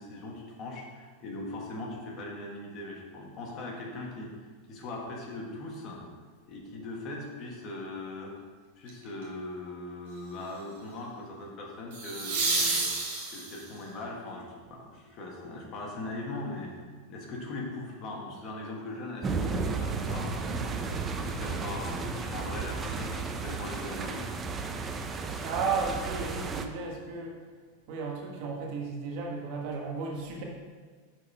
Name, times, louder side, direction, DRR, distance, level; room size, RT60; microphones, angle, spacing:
voice 1, 0.0-6.0 6.5-8.3 8.8-12.9 13.3-24.3, left 2 dB, 40° left, -1 dB, 1.5 m, -40 dB
sound 1, 8.9-9.2 11.9-13.8 16.7-16.8, right 3 dB, 70° right, 1.5 m, -30 dB
sound 2, 19.2-26.7, right 4 dB, 20° right, 0.5 m, -33 dB
voice 2, 25.4-27.4 27.9-30.4, right 4 dB, 55° right, 0 dB, 1.3 m, -34 dB
6.2 x 4.3 x 4.8 m, 1.5 s
supercardioid pair, 135°, 0 cm